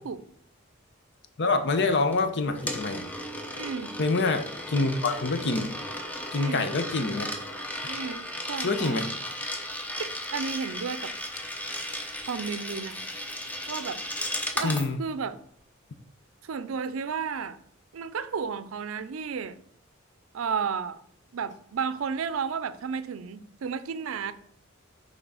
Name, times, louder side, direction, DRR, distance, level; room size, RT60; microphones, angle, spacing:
voice 1, 1.4-3.1 4.0-5.7 6.3-7.3 8.6-9.1 14.6-15.0, left 3 dB, 60° left, 0.8 m, -26 dB
Coin (dropping), 2.1-14.9, left 1 dB, 10° left, 0.7 m, -35 dB
voice 2, 3.5-3.9 6.3-6.7 7.8-9.0 10.0-11.1 12.3-13.0 13.7-14.0 14.5-15.4 16.4-17.6 17.9-19.6 20.3-21.0 21.3-24.3, right 6 dB, 80° right, 0.5 m, -33 dB
5.9 x 3.8 x 5.5 m
head